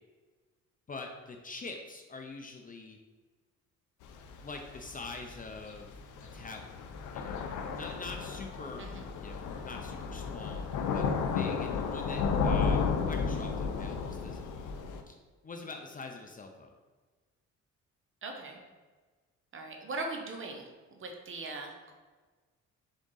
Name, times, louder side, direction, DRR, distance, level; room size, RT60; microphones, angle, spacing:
voice 1, 0.9-3.0 4.4-5.9 6.3-6.8 7.1-7.4 7.7-8.9 9.2-11.1 11.3-14.4 15.1-15.2 15.4-16.7, left 3 dB, 30° left, 3 dB, 0.5 m, -44 dB
Thunder / Rain, 4.0-15.0, left 5 dB, 85° left, 0.5 m, -33 dB
voice 2, 18.2-18.6 19.5-21.9, right 2 dB, 45° right, 2 dB, 0.9 m, -40 dB
3.7 x 3.6 x 3.8 m, 1.3 s
cardioid pair, 90°, 30 cm